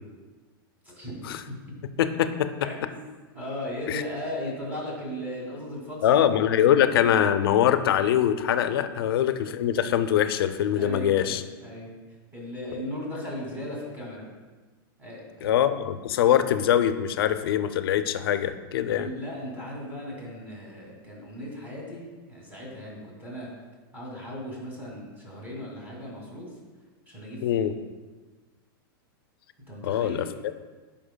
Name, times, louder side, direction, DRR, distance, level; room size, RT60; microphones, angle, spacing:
voice 1, 0.8-1.6 2.6-3.0 3.3-6.1 6.7-7.0 10.8-11.9 12.3-14.2 15.0-15.5 18.9-22.0 22.3-23.5 23.9-26.5 27.1-27.7 29.7-30.3, left 1 dB, 15° right, -3 dB, 2.3 m, -37 dB
voice 2, 2.0-2.7 3.9-4.0 6.0-11.4 15.4-19.1 27.4-27.7 29.8-30.5, left 10 dB, 80° left, 11 dB, 0.5 m, -23 dB
11.5 x 5.4 x 2.2 m, 1.3 s
supercardioid pair, 145°, 12 cm